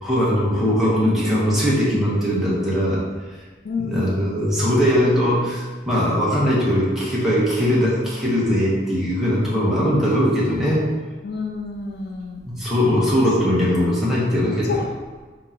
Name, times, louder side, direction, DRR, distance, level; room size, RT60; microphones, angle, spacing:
voice 1, 0.0-3.0 3.9-10.8 12.5-14.7, equal, ahead, -8 dB, 1.0 m, -20 dB
voice 2, 3.6-4.2 11.2-12.4 13.5-13.7 14.7-14.9, left 4 dB, 65° left, 0 dB, 0.6 m, -29 dB
4.6 x 2.9 x 3.8 m, 1.4 s
head